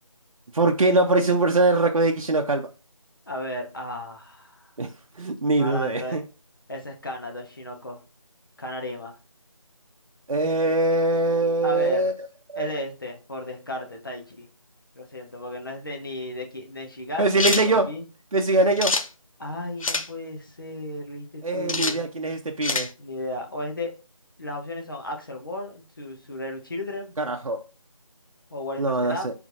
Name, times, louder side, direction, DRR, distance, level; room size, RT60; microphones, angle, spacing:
voice 1, 0.5-2.7 4.8-4.9 5.2-6.2 10.3-12.1 12.5-12.7 17.2-17.9 18.3-19.0 21.4-22.9 27.2-27.6 28.8-29.3, right 2 dB, 85° right, 0.6 m, -22 dB
voice 2, 3.3-4.6 5.4-6.2 6.7-8.0 8.6-9.2 11.6-12.1 12.6-14.5 15.0-18.0 19.4-22.0 23.0-23.9 24.4-27.1 28.5-29.3, left 1 dB, 40° left, 0.8 m, -34 dB
sound 1, 17.4-17.7 18.8-19.1 19.8-20.1 21.7-22.0 22.6-22.9, left 3 dB, 75° left, 0.6 m, -25 dB
4.8 x 3.2 x 2.6 m
figure-of-eight pair, 170°, 18 cm